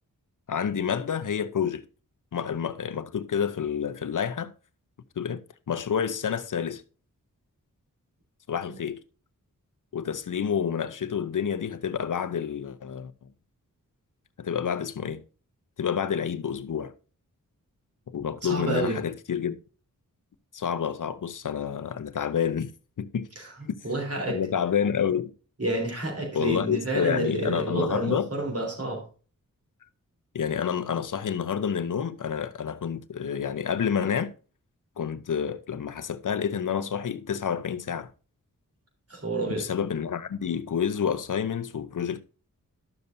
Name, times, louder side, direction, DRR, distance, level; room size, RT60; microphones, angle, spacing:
voice 1, 0.5-1.8 2.3-4.5 5.2-5.4 5.7-6.8 8.5-9.0 9.9-13.1 14.4-15.2 15.8-16.9 18.1-19.6 20.5-22.7 23.0-23.3 24.3-25.3 26.3-28.3 30.3-34.3 35.0-38.1 39.5-42.2, left 7 dB, 65° left, 0.7 m, -28 dB
voice 2, 18.4-19.0 23.4-23.5 23.8-24.4 25.6-29.0 39.1-39.7, right 2 dB, 45° right, 3.7 m, -29 dB
12.0 x 6.8 x 2.7 m
wide cardioid pair, 65°, 34 cm